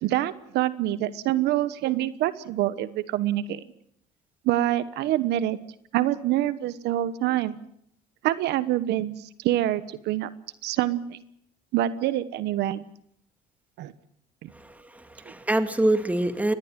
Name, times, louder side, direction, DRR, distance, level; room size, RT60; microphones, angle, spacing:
voice 1, 0.0-3.6 4.4-5.6 5.9-7.6 8.2-10.3 10.6-11.2 11.7-12.8 13.8-13.9 14.4-14.5, right 13 dB, 80° right, 15 dB, 1.2 m, -26 dB
voice 2, 14.5-16.5, right 1 dB, 10° right, 9 dB, 2.3 m, -25 dB
23.5 x 19.5 x 7.4 m, 0.70 s
cardioid pair, 110°, 17 cm